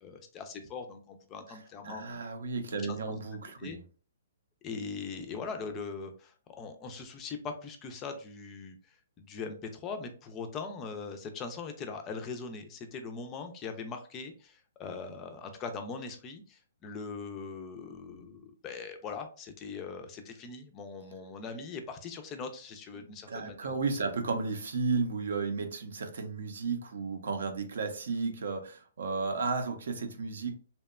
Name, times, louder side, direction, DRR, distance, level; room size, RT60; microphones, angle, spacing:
voice 1, 0.0-2.2 2.9-3.2 3.6-3.8 4.6-23.7, left 4 dB, 20° left, 0.3 m, -41 dB
voice 2, 1.8-3.8 23.0-30.5, right 4 dB, 70° right, 0.5 m, -33 dB
2.7 x 2.1 x 2.2 m
hypercardioid pair, 155°, 0 cm